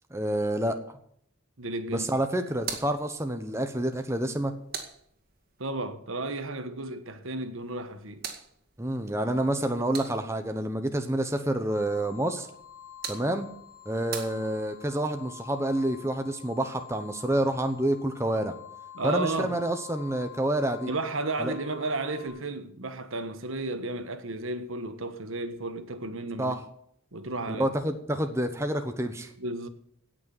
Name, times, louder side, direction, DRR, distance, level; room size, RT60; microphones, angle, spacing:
voice 1, 0.1-1.0 1.9-4.5 8.8-12.5 13.1-13.5 13.9-18.5 19.0-20.9 21.4-21.5 26.4-26.6 27.5-29.3, right 1 dB, 10° right, 1.0 m, -28 dB
voice 2, 1.6-2.1 5.6-8.2 18.9-19.5 20.9-26.5 27.1-27.7 29.4-29.7, right 2 dB, 65° right, 1.4 m, -33 dB
sound 1, 2.5-5.6 7.6-10.6 12.5-15.0, right 7 dB, 45° right, 2.1 m, -43 dB
sound 2, 11.7-22.3, left 11 dB, 15° left, 5.6 m, -48 dB
17.0 x 6.3 x 9.1 m
head